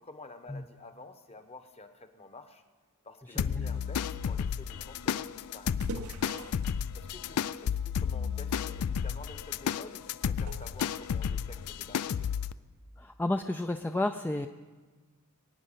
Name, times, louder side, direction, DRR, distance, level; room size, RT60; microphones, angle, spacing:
voice 1, 0.0-2.6 3.0-5.9 6.9-12.3, left 2 dB, 30° left, 8 dB, 1.0 m, -50 dB
sound 1, 3.4-12.5, left 7 dB, 90° left, 0.4 m, -32 dB
voice 2, 3.4-3.8 13.0-14.5, left 2 dB, 10° left, 6 dB, 0.4 m, -32 dB
sound 2, 5.0-11.9, right 4 dB, 70° right, 0.7 m, -49 dB
22.5 x 9.4 x 5.6 m, 1.4 s
head